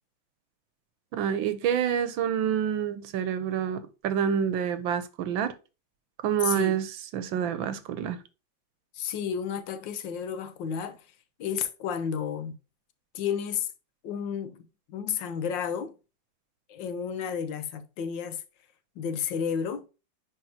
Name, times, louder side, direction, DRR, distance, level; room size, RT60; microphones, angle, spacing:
voice 1, 1.1-5.5 6.2-6.9 7.1-8.2, right 8 dB, 90° right, 1.5 m, -27 dB
voice 2, 6.4-6.8 8.9-11.0 11.4-12.6 13.1-13.7 14.0-14.6 14.9-15.9 16.7-18.4 19.0-19.9, left 7 dB, 75° left, 1.4 m, -31 dB
9.8 x 3.4 x 2.8 m
omnidirectional pair, 2.1 m